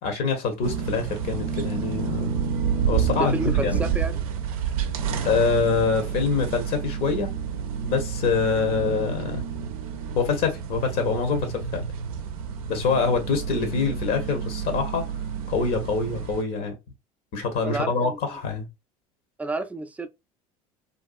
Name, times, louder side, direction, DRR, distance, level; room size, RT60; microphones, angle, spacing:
voice 1, 0.0-2.3 2.9-3.8 5.2-7.3 7.8-9.4 10.1-11.8 12.7-15.1 15.5-16.7 17.3-18.7, left 5 dB, 55° left, 0.9 m, -25 dB
sound 1, 0.6-16.4, right 7 dB, 75° right, 0.4 m, -29 dB
voice 2, 3.2-4.2 17.6-18.2 19.4-20.1, right 2 dB, 10° right, 0.4 m, -30 dB
2.5 x 2.4 x 2.4 m
hypercardioid pair, 70°, 19 cm